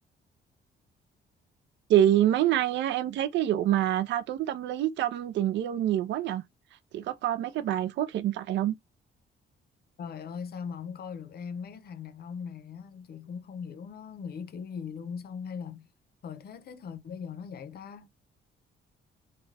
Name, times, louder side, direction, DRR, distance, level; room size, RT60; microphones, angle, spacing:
voice 1, 1.9-6.4 6.9-8.7, right 12 dB, 65° right, 0.4 m, -26 dB
voice 2, 10.0-15.9 16.2-18.1, left 6 dB, 50° left, 0.6 m, -40 dB
2.4 x 2.2 x 3.2 m
cardioid pair, 90°, 20 cm